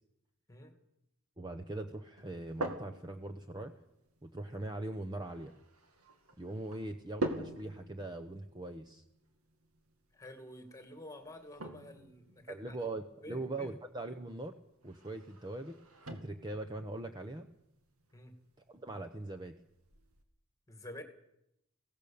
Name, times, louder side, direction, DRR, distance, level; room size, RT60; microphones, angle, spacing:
voice 1, 1.4-3.7 4.2-5.5 6.4-9.0 12.5-14.5 14.8-15.8 16.1-17.5 18.7-19.6, right 2 dB, 20° right, 5 dB, 0.9 m, -41 dB
sound 1, 2.2-20.2, right 2 dB, 90° right, 2.5 m, -46 dB
voice 2, 10.1-12.8 13.2-13.8 18.1-18.3 20.7-21.0, left 1 dB, 15° left, 6 dB, 2.2 m, -49 dB
22.5 x 17.0 x 7.1 m, 0.83 s
head